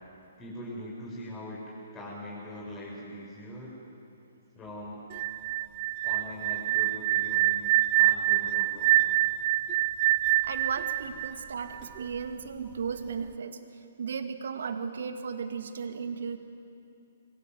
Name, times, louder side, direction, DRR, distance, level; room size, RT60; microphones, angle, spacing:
voice 1, 0.4-1.6 1.9-3.7 4.5-5.0 6.0-9.1 12.6-12.7, left 1 dB, 20° left, -5 dB, 6.9 m, -42 dB
sound 1, 5.1-12.0, right 16 dB, 40° right, 0.6 m, -26 dB
voice 2, 10.4-16.4, right 6 dB, 60° right, 7 dB, 2.2 m, -35 dB
27.5 x 23.5 x 7.9 m, 2.7 s
figure-of-eight pair, 125°, 0 cm